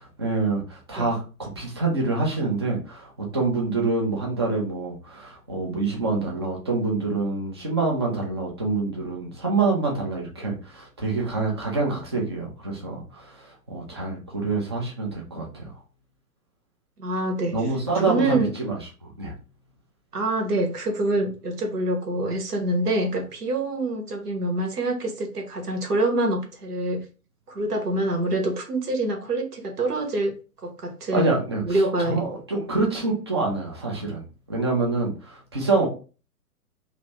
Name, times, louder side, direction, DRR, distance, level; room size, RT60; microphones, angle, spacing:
voice 1, 0.2-15.7 17.5-18.8 19.2-19.3 31.1-35.9, right 3 dB, 20° right, -1 dB, 0.4 m, -26 dB
voice 2, 17.0-17.6 18.1-18.5 20.1-27.0 27.5-30.3 30.6-31.3 31.6-32.2 32.5-32.6, right 2 dB, 75° right, 3 dB, 1.2 m, -25 dB
2.8 x 2.6 x 3.0 m, 0.35 s
figure-of-eight pair, 125°, 46 cm